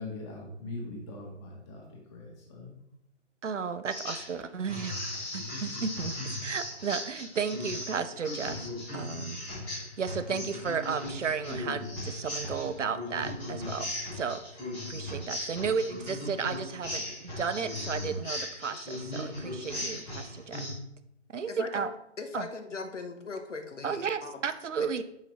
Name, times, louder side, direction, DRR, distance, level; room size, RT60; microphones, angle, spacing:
voice 1, 0.0-2.8, left 2 dB, 25° left, -2 dB, 1.7 m, -41 dB
voice 2, 3.4-6.2 6.4-8.7 8.9-9.4 10.0-14.4 14.9-20.6 21.3-21.9 22.3-22.5 23.8-25.0, right 6 dB, 80° right, 12 dB, 0.6 m, -33 dB
sound 1, 3.9-4.4 4.7-20.7, left 1 dB, 5° left, 0.5 m, -37 dB
voice 3, 21.5-21.9 22.2-24.4 24.8-24.9, left 3 dB, 80° left, 7 dB, 1.0 m, -39 dB
7.0 x 5.6 x 3.0 m, 0.79 s
figure-of-eight pair, 140°, 36 cm